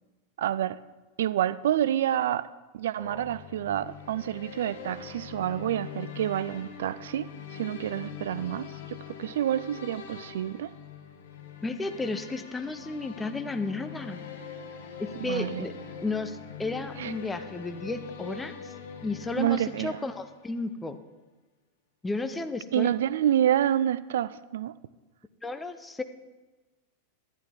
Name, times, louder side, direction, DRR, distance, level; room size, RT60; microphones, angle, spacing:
voice 1, 0.4-0.8 1.2-10.7 15.2-15.6 17.0-17.2 19.4-20.1 22.7-24.7, right 11 dB, 60° right, 0.4 m, -28 dB
sound 1, 3.0-20.7, left 6 dB, 55° left, 1.1 m, -43 dB
voice 2, 11.6-14.2 15.0-15.7 16.0-18.7 19.0-21.0 22.0-22.9 25.4-26.0, left 3 dB, 10° left, 0.7 m, -33 dB
12.0 x 11.0 x 3.7 m
figure-of-eight pair, 90°, 0 cm